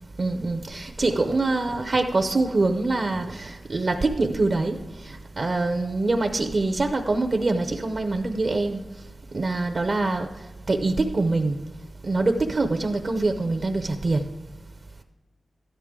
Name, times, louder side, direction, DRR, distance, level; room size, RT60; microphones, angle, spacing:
voice 1, 0.2-4.8 5.0-8.8 9.3-10.3 10.7-11.5 12.1-14.2, right 2 dB, 45° right, 0.6 m, -24 dB
13.0 x 10.0 x 3.7 m
wide cardioid pair, 110°, 0 cm